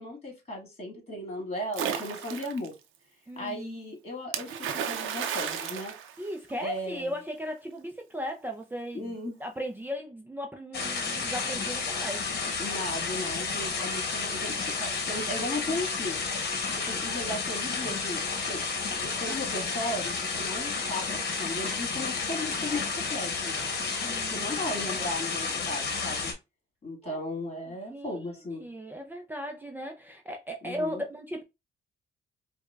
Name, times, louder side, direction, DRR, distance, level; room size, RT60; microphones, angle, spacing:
voice 1, 0.0-2.7 3.4-5.9 6.6-7.1 8.9-9.3 12.6-16.3 16.9-18.6 19.0-23.6 24.3-26.3 26.8-28.7 30.6-31.0, left 1 dB, 30° left, 1.9 m, -36 dB
Splash splatter, 1.7-2.7 4.3-6.8, right 8 dB, 80° right, 0.6 m, -33 dB
voice 2, 3.3-3.7 6.2-12.2 24.0-24.5 27.0-27.2 27.9-28.3 28.6-31.4, equal, 10° right, 0.5 m, -37 dB
sound 1, 10.7-26.3, left 4 dB, 55° left, 1.1 m, -31 dB
4.7 x 2.3 x 2.3 m
cardioid pair, 90°, 20 cm